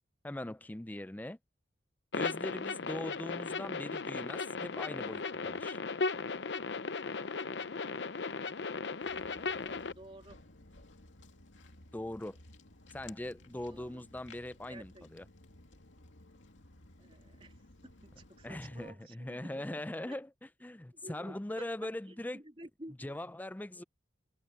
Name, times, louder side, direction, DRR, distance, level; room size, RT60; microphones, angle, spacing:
voice 1, 0.2-1.4 2.1-5.8 11.9-12.4 12.9-15.2 18.4-20.3 20.6-22.4 23.0-23.8, left 1 dB, 10° left, 0.4 m, -41 dB
sound 1, 2.1-9.9, left 4 dB, 65° left, 0.7 m, -36 dB
Walk footsteps, 9.0-18.9, left 2 dB, 90° left, 2.5 m, -57 dB
voice 2, 9.2-10.4 13.7-14.1 14.7-15.1 17.0-20.1 20.9-21.7 22.1-23.2, right 1 dB, 30° right, 2.7 m, -53 dB
head